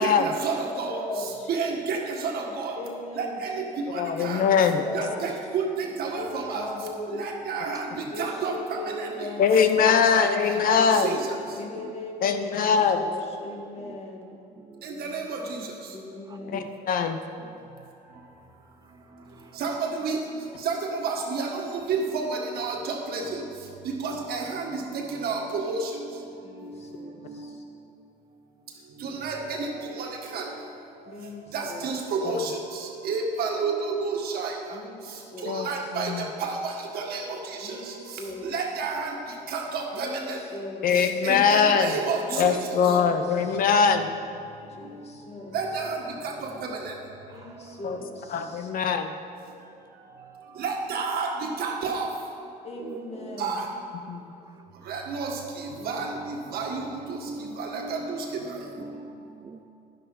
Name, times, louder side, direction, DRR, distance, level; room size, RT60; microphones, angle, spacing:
voice 1, 0.0-2.8 3.2-4.4 4.9-6.7 7.1-9.3 10.1-11.3 14.8-15.7 19.5-20.2 20.6-23.4 23.8-26.1 26.5-26.7 27.3-27.5 29.0-30.5 31.5-34.8 35.4-39.2 39.5-40.4 40.9-42.6 42.8-43.0 44.8-44.9 45.5-46.9 50.6-52.1 53.4-53.7 54.9-59.3, right 4 dB, 65° right, 1 dB, 1.8 m, -31 dB
voice 2, 0.9-1.5 2.8-3.4 4.4-5.4 6.2-7.3 8.1-11.1 11.3-14.4 14.9-15.4 15.9-16.7 26.4-27.6 31.1-31.9 34.7-35.9 37.6-38.5 39.9-41.3 42.3-43.6 44.7-45.6 47.3-48.7 52.6-53.6 55.8-56.1, left 2 dB, 40° left, 1 dB, 1.8 m, -39 dB
voice 3, 3.9-4.8 9.4-11.1 12.2-13.0 16.5-17.2 32.3-32.5 35.5-35.7 35.9-36.3 40.8-41.9 42.4-44.1 47.8-48.0 48.3-49.1 54.1-54.3, left 6 dB, 55° left, 8 dB, 0.8 m, -22 dB
voice 4, 8.3-8.6 9.0-9.1 10.4-10.6 10.9-11.1 11.5-12.1 12.7-12.8 13.8-14.0 14.5-14.9 16.3-16.7 17.4-17.7 18.8-19.6 38.4-38.5 41.2-41.4 41.8-42.1 47.3-47.8 52.8-53.4 57.3-57.6 58.4-59.1 59.4-59.6, right 6 dB, 20° right, 7 dB, 0.3 m, -45 dB
11.0 x 10.5 x 4.2 m, 2.6 s
cardioid pair, 110°, 17 cm